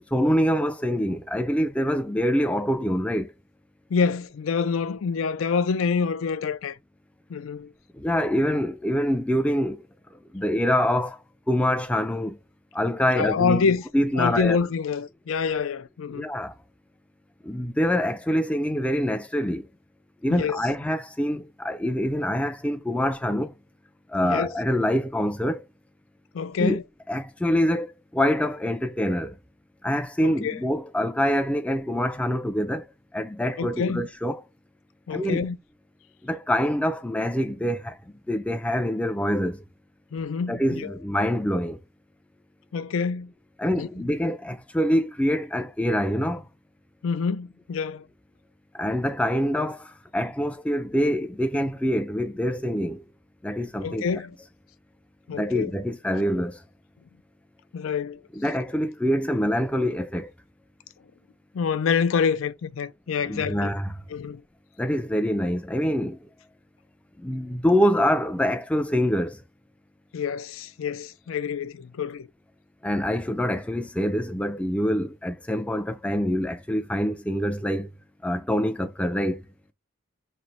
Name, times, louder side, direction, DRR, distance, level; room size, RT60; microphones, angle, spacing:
voice 1, 0.1-3.3 7.9-12.4 12.7-13.6 13.9-14.6 16.1-16.5 17.4-19.7 20.2-23.5 24.1-25.6 26.6-26.8 27.1-29.4 29.8-32.9 33.1-34.4 35.1-35.5 36.2-38.0 38.3-39.6 40.5-41.8 43.6-46.5 48.7-53.0 53.4-54.2 55.3-56.6 58.4-60.3 63.2-64.0 64.8-66.3 67.2-69.4 72.8-77.9 78.2-79.5, equal, 5° left, 0.3 m, -25 dB
voice 2, 3.9-6.8 7.3-7.7 13.1-13.8 14.2-16.3 20.3-20.6 24.2-24.5 26.3-26.8 30.2-30.6 33.6-34.1 35.1-35.6 40.1-40.9 42.7-43.3 43.8-43.9 47.0-48.1 53.8-54.4 55.3-55.7 57.7-58.2 61.5-63.7 64.1-64.4 70.1-72.3, left 5 dB, 75° left, 0.4 m, -26 dB
3.2 x 2.5 x 4.1 m
head